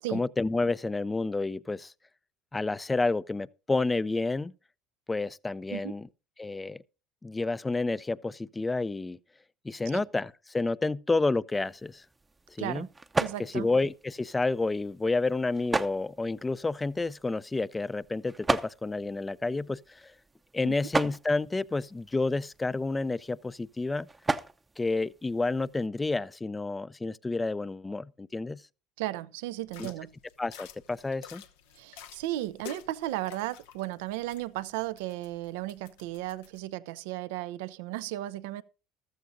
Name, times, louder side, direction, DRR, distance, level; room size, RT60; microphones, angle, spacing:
voice 1, 0.1-1.9 2.5-4.5 5.1-6.1 6.4-6.8 7.2-9.2 9.6-12.0 12.6-12.9 13.5-20.1 20.5-24.1 24.8-28.6 29.8-29.9 30.4-31.4, left 3 dB, 15° left, 0.5 m, -30 dB
sound 1, 11.5-25.9, right 3 dB, 20° right, 0.7 m, -37 dB
voice 2, 12.6-12.9 13.2-13.7 20.6-20.8 29.0-30.1 31.7-38.6, right 15 dB, 80° right, 0.6 m, -35 dB
sound 2, 29.6-36.6, left 8 dB, 85° left, 1.0 m, -50 dB
14.5 x 13.0 x 2.7 m
hypercardioid pair, 80°, 0 cm